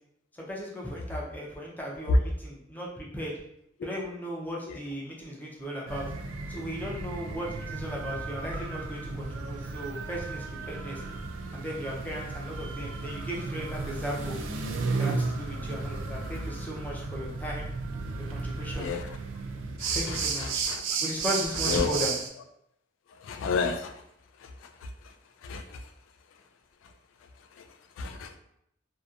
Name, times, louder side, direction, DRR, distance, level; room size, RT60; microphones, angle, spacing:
voice 1, 0.4-3.3 3.8-6.1 6.5-11.0 11.5-14.4 15.0-17.7 18.3-18.9 19.9-20.7 21.0-22.1, equal, 10° left, -4 dB, 0.5 m, -36 dB
sound 1, 5.9-22.3, right 4 dB, 90° right, 0.4 m, -34 dB
voice 2, 19.8-20.2 20.7-20.8 21.7-21.9 23.3-23.9 25.4-25.6 28.0-28.4, left 3 dB, 85° left, 6 dB, 0.3 m, -28 dB
2.6 x 2.2 x 2.4 m, 0.76 s
head